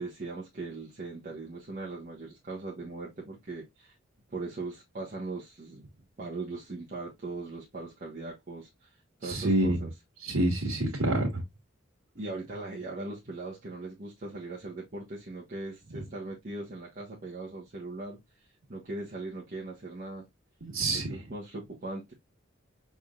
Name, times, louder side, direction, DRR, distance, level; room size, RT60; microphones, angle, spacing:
voice 1, 0.0-3.9 4.3-5.9 6.2-8.9 9.2-9.9 12.1-18.2 18.7-20.2 21.3-22.1, right 3 dB, 40° right, 1.2 m, -39 dB
voice 2, 9.2-9.8 10.2-11.4 20.6-21.2, right 1 dB, 85° right, 1.5 m, -27 dB
5.9 x 3.6 x 2.4 m
head